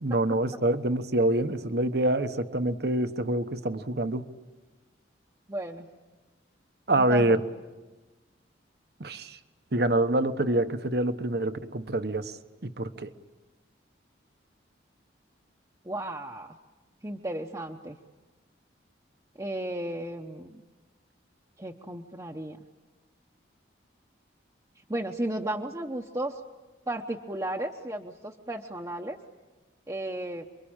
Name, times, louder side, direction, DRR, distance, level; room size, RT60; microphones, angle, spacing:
voice 1, 0.0-4.3 6.9-7.4 9.0-9.4 9.7-12.4 12.6-13.1, right 1 dB, 55° right, 10 dB, 1.1 m, -26 dB
voice 2, 5.5-5.9 6.9-7.4 15.8-16.6 17.0-18.0 19.4-20.6 21.6-22.6 24.9-26.4 26.9-29.2 29.9-30.4, right 1 dB, 20° right, -1 dB, 1.0 m, -34 dB
28.0 x 23.5 x 8.9 m, 1.2 s
head